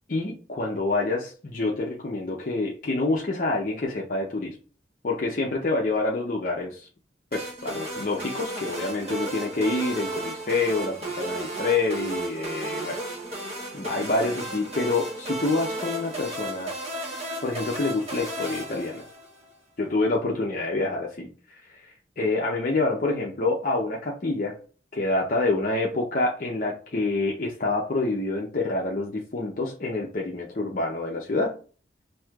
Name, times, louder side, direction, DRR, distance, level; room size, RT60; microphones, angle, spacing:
voice 1, 0.1-4.6 5.0-6.9 7.3-13.0 13.7-16.7 17.4-19.0 19.8-21.3 21.7-24.6 24.9-31.5, left 2 dB, 45° left, -2 dB, 0.6 m, -27 dB
sound 1, 7.3-19.5, right 1 dB, 35° right, 0.8 m, -34 dB
6.0 x 2.7 x 2.3 m, 0.39 s
head